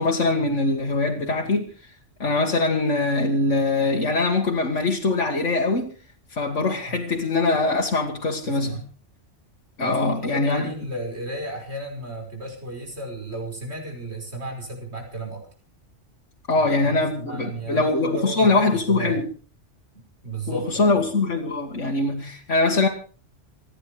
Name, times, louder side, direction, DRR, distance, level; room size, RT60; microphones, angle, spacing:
voice 1, 0.0-1.9 2.2-5.9 6.3-8.8 9.8-10.7 16.5-19.2 20.5-22.9, left 3 dB, 90° left, 2.2 m, -22 dB
voice 2, 8.4-8.8 9.8-15.5 16.6-19.2 19.9-21.0, right 1 dB, 65° right, 5.9 m, -34 dB
27.5 x 10.0 x 4.8 m
omnidirectional pair, 1.2 m